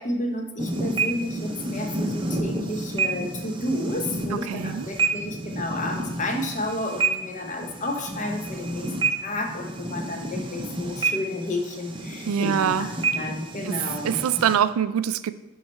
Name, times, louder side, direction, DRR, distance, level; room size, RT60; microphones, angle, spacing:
voice 1, 0.0-8.9 9.2-14.2, left 1 dB, 35° left, 3 dB, 0.7 m, -31 dB
sound 1, 0.6-14.6, right 3 dB, 20° right, 0.6 m, -30 dB
voice 2, 4.5-4.9 12.3-12.9 13.7-13.8 14.0-15.3, right 8 dB, 80° right, 13 dB, 0.3 m, -24 dB
9.4 x 3.2 x 4.4 m, 1.1 s
head